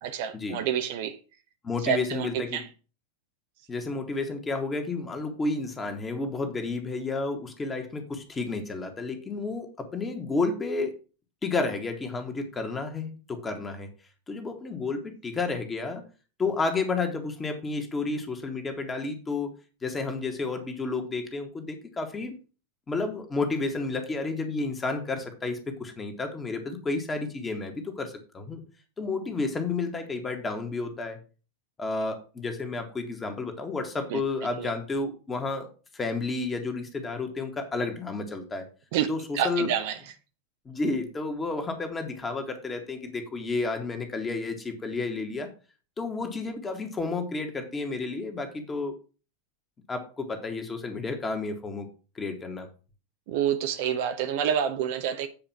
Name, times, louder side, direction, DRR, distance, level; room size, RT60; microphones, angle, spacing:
voice 1, 0.0-1.2 1.8-2.7 34.1-34.2 34.6-34.7 38.9-39.1 39.3-40.0 53.3-55.3, right 9 dB, 50° right, 1.0 m, -28 dB
voice 2, 1.6-2.6 3.7-10.9 11.4-13.9 14.3-16.0 16.4-19.5 19.8-22.3 22.9-28.6 29.0-31.2 31.8-38.7 39.1-39.7 40.7-45.5 46.0-48.9 49.9-51.9 52.2-52.7, left 3 dB, 15° left, 1.9 m, -31 dB
8.7 x 4.9 x 5.8 m
figure-of-eight pair, 90°, 0 cm